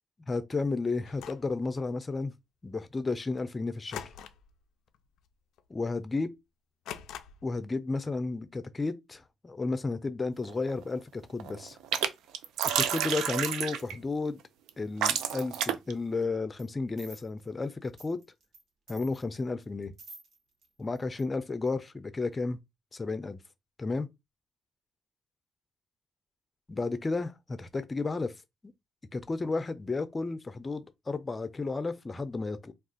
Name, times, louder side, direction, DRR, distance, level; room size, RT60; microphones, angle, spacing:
voice 1, 0.3-2.3 2.6-4.1 5.7-6.3 7.4-11.8 12.8-14.4 14.8-18.2 18.9-19.9 20.8-22.6 22.9-23.4 23.8-24.1 26.7-28.3 29.1-32.7, left 3 dB, 25° left, 0.5 m, -32 dB
sound 1, 1.0-1.5 3.9-4.6 4.9-5.2 5.6-5.7 6.8-7.6, left 9 dB, 85° left, 0.3 m, -43 dB
sound 2, 10.4-10.9 11.2-12.1 12.3-14.0 14.7-14.8 15.0-15.9, right 9 dB, 85° right, 0.4 m, -29 dB
sound 3, 16.6-16.7 17.0-18.6 18.9-20.7 21.0-21.2 21.7-21.8, right 3 dB, 65° right, 1.2 m, -51 dB
2.4 x 2.4 x 3.7 m
cardioid pair, 90°, 0 cm